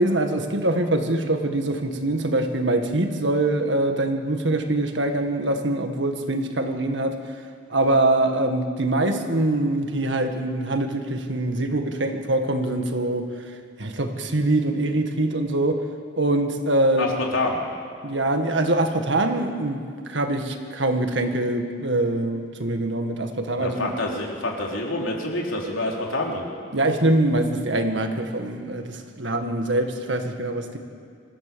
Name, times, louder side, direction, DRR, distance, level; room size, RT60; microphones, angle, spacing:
voice 1, 0.0-7.2 7.7-13.2 13.8-15.8 16.2-17.1 18.0-23.9 26.7-30.8, right 2 dB, 65° right, 5 dB, 1.8 m, -23 dB
voice 2, 17.0-17.6 23.6-26.5, left 2 dB, 85° left, -1 dB, 3.7 m, -27 dB
25.5 x 15.0 x 7.0 m, 2.2 s
head